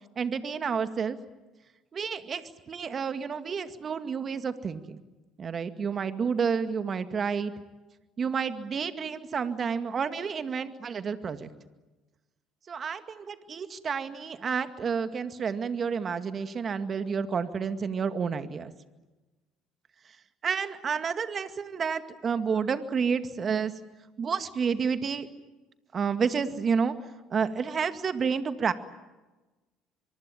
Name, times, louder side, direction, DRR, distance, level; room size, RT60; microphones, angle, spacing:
voice 1, 0.2-1.2 1.9-5.0 5.4-7.5 8.2-11.5 12.7-18.7 20.4-23.7 24.2-25.3 25.9-26.9 27.3-28.7, right 6 dB, 40° right, 10 dB, 2.0 m, -30 dB
24.5 x 24.0 x 9.1 m, 1.1 s
hypercardioid pair, 65°, 0 cm